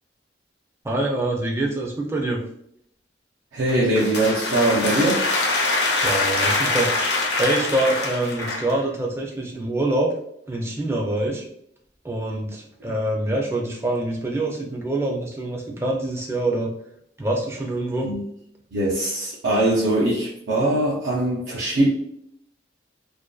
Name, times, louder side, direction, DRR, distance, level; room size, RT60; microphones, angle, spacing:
voice 1, 0.8-2.4 6.0-6.9 7.4-10.1 10.5-11.4 12.0-16.7 17.2-18.1, right 1 dB, 15° right, -1 dB, 0.4 m, -25 dB
voice 2, 3.5-5.2 18.0-18.2 18.7-21.9, right 1 dB, 85° right, -5 dB, 0.5 m, -21 dB
sound 1, 3.7-8.8, left 2 dB, 60° left, 0.5 m, -24 dB
2.5 x 2.2 x 2.2 m, 0.71 s
head